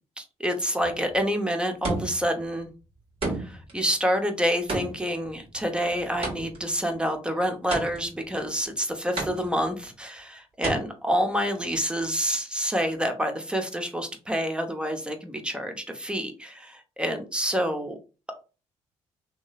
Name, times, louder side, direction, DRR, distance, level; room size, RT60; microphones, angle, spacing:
voice 1, 0.2-2.7 3.4-18.0, equal, 10° right, 5 dB, 0.8 m, -28 dB
sound 1, 0.8-1.2 1.8-2.4 3.2-3.7 4.7-6.7 7.7-8.3 9.2-9.8 10.6-10.8, right 2 dB, 50° right, 1.6 m, -32 dB
3.0 x 2.9 x 2.4 m, 0.33 s
supercardioid pair, 70°, 12 cm